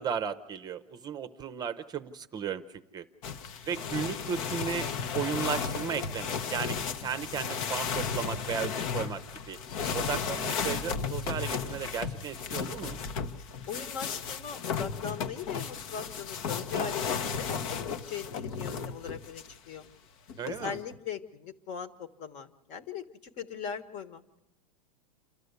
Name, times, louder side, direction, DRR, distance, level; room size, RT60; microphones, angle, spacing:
voice 1, 0.0-3.0 3.7-6.8 7.0-9.6 9.9-13.0 20.4-20.8, right 7 dB, 20° right, 10 dB, 0.8 m, -35 dB
sound 1, 3.2-19.6 20.3-21.0, left 6 dB, 60° left, 1.2 m, -34 dB
voice 2, 13.7-19.9 20.4-23.0 23.4-24.4, left 7 dB, 40° left, 12 dB, 1.5 m, -40 dB
28.0 x 12.5 x 8.2 m, 0.91 s
supercardioid pair, 140°, 19 cm